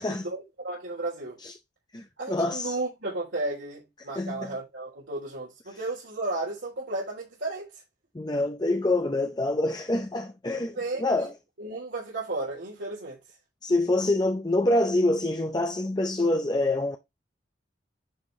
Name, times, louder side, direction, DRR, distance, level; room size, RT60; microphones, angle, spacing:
voice 1, 0.1-1.4 2.2-7.7 10.8-11.3 11.6-13.2, right 2 dB, 75° right, 3.7 m, -33 dB
voice 2, 1.9-2.8 4.1-4.6 5.7-5.8 8.1-11.3 13.6-17.0, left 2 dB, 20° left, 0.7 m, -26 dB
10.0 x 4.4 x 3.2 m
head